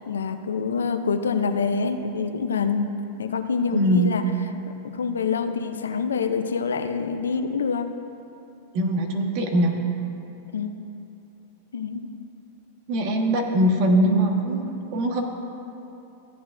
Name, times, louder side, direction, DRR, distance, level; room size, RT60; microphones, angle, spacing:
voice 1, 0.0-2.9 3.2-4.2 4.9-7.9 10.5-10.9 11.7-12.1, left 5 dB, 90° left, 8 dB, 0.6 m, -26 dB
voice 2, 3.7-4.1 8.7-9.8 12.9-15.2, right 1 dB, 55° right, 2 dB, 1.4 m, -22 dB
15.0 x 8.7 x 2.6 m, 2.8 s
hypercardioid pair, 110°, 0 cm